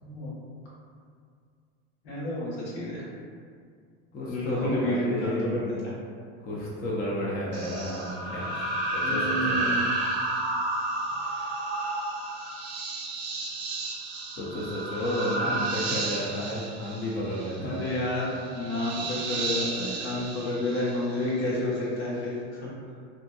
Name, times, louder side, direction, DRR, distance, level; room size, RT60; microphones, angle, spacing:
voice 1, 0.0-0.3 2.0-3.0 4.3-5.9 9.0-9.9 11.4-11.9 15.4-15.6 17.6-22.3 22.6-22.7, left 1 dB, 80° left, -8 dB, 1.2 m, -30 dB
voice 2, 4.1-5.8 6.4-8.5 8.9-9.8 14.4-17.9, equal, 25° left, -5 dB, 0.5 m, -32 dB
sound 1, 7.5-21.4, right 2 dB, 70° right, 0.7 m, -32 dB
2.6 x 2.5 x 2.2 m, 2.1 s
supercardioid pair, 110°, 34 cm